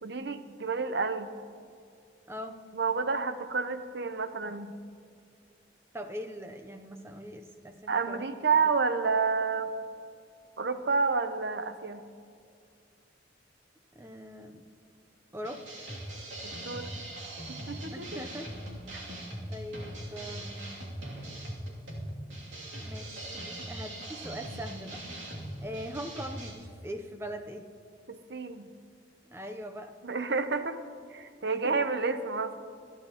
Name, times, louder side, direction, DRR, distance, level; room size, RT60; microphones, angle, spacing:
voice 1, 0.0-1.3 2.7-4.8 7.9-9.7 10.6-12.0 16.4-16.9 17.5-18.2 18.9-19.0 28.1-28.7 30.0-30.8 31.1-32.6, right 4 dB, 60° right, 10 dB, 0.7 m, -30 dB
voice 2, 2.3-2.6 5.9-8.3 13.9-14.6 15.3-15.6 17.9-18.5 19.5-20.9 22.8-25.0 25.6-27.7 29.3-29.9 31.5-31.7, equal, 15° right, 6 dB, 0.7 m, -41 dB
sound 1, 15.4-26.5, right 1 dB, 80° right, 2.7 m, -41 dB
26.5 x 10.0 x 3.0 m, 2.3 s
head